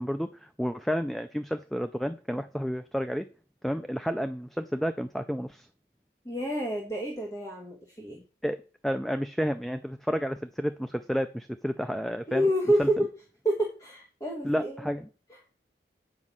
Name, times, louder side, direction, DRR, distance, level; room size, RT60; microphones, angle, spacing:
voice 1, 0.0-3.2 3.6-5.7 8.4-8.6 8.8-12.4 12.8-12.9 14.4-15.1, equal, ahead, 9 dB, 0.3 m, -30 dB
voice 2, 6.2-8.2 12.3-13.1 13.4-14.9, right 1 dB, 20° left, 0 dB, 1.5 m, -28 dB
8.1 x 5.3 x 7.3 m, 0.37 s
head